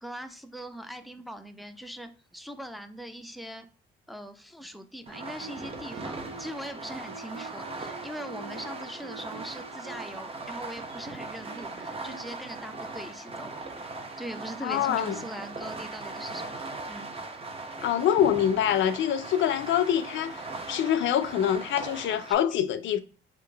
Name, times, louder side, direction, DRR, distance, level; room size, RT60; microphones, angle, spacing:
voice 1, 0.0-3.7 4.1-13.6 14.2-17.1, equal, ahead, 0.4 m, -41 dB
Fireworks, 5.1-22.3, right 3 dB, 30° right, 0.7 m, -39 dB
Guitar, 5.1-12.8, right 5 dB, 85° right, 0.6 m, -48 dB
voice 2, 14.6-15.2 17.8-23.0, left 10 dB, 70° left, 0.5 m, -25 dB
3.8 x 2.5 x 3.3 m
cardioid pair, 90°, 20 cm